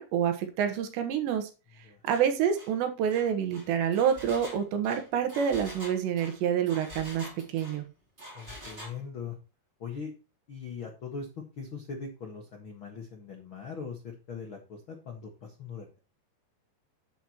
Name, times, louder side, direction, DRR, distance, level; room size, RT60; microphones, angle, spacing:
voice 1, 0.0-1.5 2.1-7.2 7.5-7.8, right 8 dB, 80° right, 7 dB, 3.4 m, -27 dB
Engine, 2.1-2.3 2.5-2.7 3.1-7.8 8.2-9.0, equal, 15° right, 2.9 m, -46 dB
voice 2, 8.3-9.4 9.8-10.1 10.5-16.0, left 5 dB, 70° left, 2 dB, 1.2 m, -41 dB
9.1 x 9.1 x 3.0 m, 0.31 s
omnidirectional pair, 5.1 m